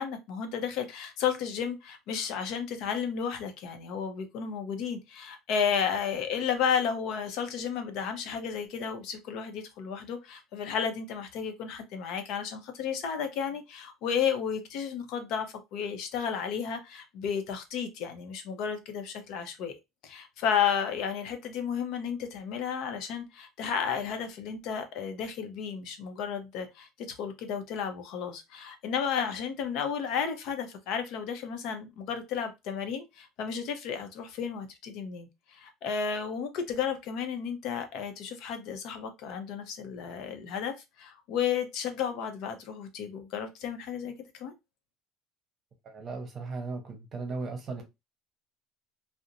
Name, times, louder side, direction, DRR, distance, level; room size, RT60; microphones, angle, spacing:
voice 1, 0.0-19.7 20.0-44.5, left 7 dB, 65° left, 0.6 m, -33 dB
voice 2, 45.8-47.8, right 3 dB, 35° right, 0.8 m, -36 dB
2.5 x 2.1 x 2.7 m
supercardioid pair, 120°, 0 cm